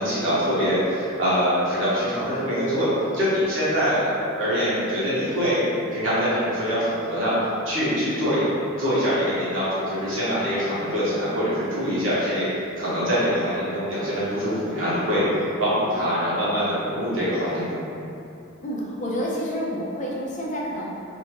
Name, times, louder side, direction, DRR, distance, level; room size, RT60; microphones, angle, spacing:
voice 1, 0.0-5.6 5.9-7.4 7.6-8.5 8.8-12.5 12.8-15.3 15.6-17.8, equal, 65° right, -10 dB, 1.1 m, -24 dB
voice 2, 18.6-20.8, equal, 35° left, -4 dB, 0.5 m, -29 dB
2.7 x 2.6 x 2.9 m, 2.7 s
head